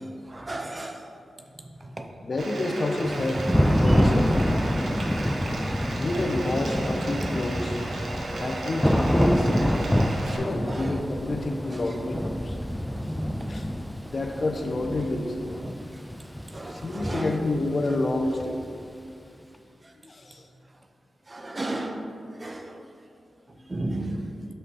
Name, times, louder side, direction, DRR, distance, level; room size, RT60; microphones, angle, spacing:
voice 1, 0.3-1.0 2.0-2.1 10.8-10.9 16.5-17.3 21.3-22.0 22.4-22.6 23.7-24.3, right 2 dB, 30° right, 5 dB, 0.7 m, -33 dB
voice 2, 2.2-3.4 3.8-4.4 6.0-7.8 8.4-9.5 10.1-12.6 13.5-13.7 14.0-15.4 16.6-18.6 20.0-20.4, left 2 dB, 50° left, 5 dB, 0.7 m, -29 dB
Bathtub (filling or washing), 2.4-10.4, right 2 dB, 65° right, 0.9 m, -35 dB
Thunder / Rain, 3.1-18.8, equal, 5° left, 0.3 m, -27 dB
5.6 x 5.6 x 4.6 m, 2.5 s
cardioid pair, 60°, 0 cm